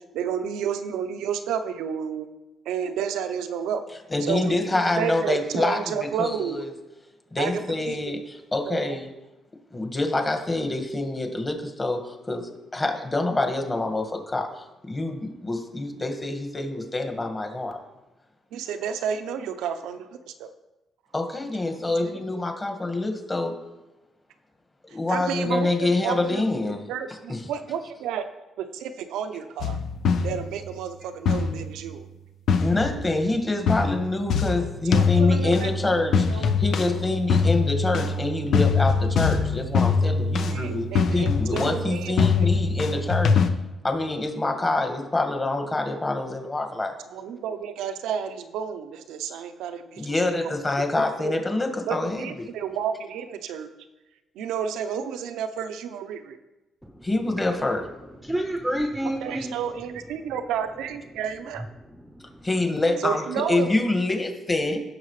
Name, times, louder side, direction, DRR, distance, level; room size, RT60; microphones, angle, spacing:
voice 1, 0.1-2.3 2.7-3.8 4.2-6.6 7.4-8.2 8.7-9.0 18.5-20.5 22.0-22.4 25.1-28.2 28.6-29.8 30.2-32.1 34.9-35.7 36.3-36.6 40.5-42.7 47.1-50.6 50.9-51.4 51.9-53.7 54.4-56.4 59.2-61.6 63.0-63.7, right 8 dB, 90° right, 9 dB, 0.7 m, -31 dB
voice 2, 4.1-5.9 6.2-6.7 7.3-9.1 9.7-17.8 21.1-23.6 24.9-26.8 27.3-27.4 32.6-43.4 43.8-46.9 50.0-52.5 57.0-57.8 62.4-64.8, left 2 dB, 20° left, 4 dB, 1.7 m, -26 dB
sound 1, 29.6-30.7 31.3-31.9 32.5-33.3 33.7-43.5, left 5 dB, 70° left, 0.7 m, -23 dB
voice 3, 58.2-59.6 61.9-62.5, right 1 dB, 5° right, 3 dB, 0.8 m, -30 dB
16.0 x 6.3 x 3.2 m, 1.0 s
cardioid pair, 90°, 0 cm